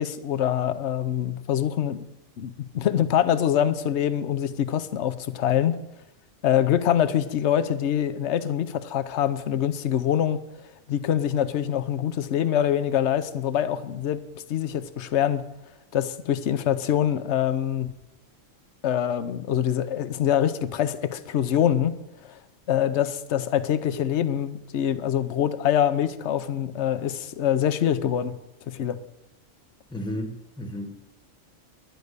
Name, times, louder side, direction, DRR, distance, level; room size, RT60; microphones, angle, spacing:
voice 1, 0.0-2.0 2.4-5.8 6.4-10.4 10.9-15.4 15.9-17.9 18.8-22.0 22.2-22.4 22.7-28.3 28.7-29.0, left 10 dB, 60° left, 12 dB, 1.0 m, -24 dB
voice 2, 29.9-30.9, left 1 dB, 5° left, 5 dB, 1.2 m, -33 dB
11.0 x 9.5 x 6.6 m, 0.91 s
omnidirectional pair, 1.4 m